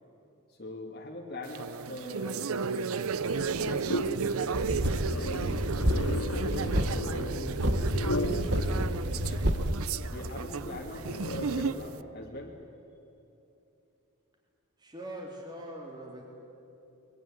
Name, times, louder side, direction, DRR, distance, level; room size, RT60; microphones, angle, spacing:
voice 1, 0.5-3.1 3.5-4.2 4.9-5.7 6.2-9.5 10.0-12.6, left 1 dB, 45° left, -1 dB, 2.4 m, -42 dB
sound 1, 1.4-12.0, right 5 dB, 70° right, 0.6 m, -34 dB
sound 2, 3.1-11.6, left 1 dB, 70° left, 2.2 m, -37 dB
sound 3, 4.5-6.2 6.5-6.9 7.5-9.7, equal, 50° right, 1.6 m, -29 dB
voice 2, 14.8-16.2, right 1 dB, 20° right, -1 dB, 3.5 m, -42 dB
24.0 x 21.5 x 9.8 m, 2.9 s
head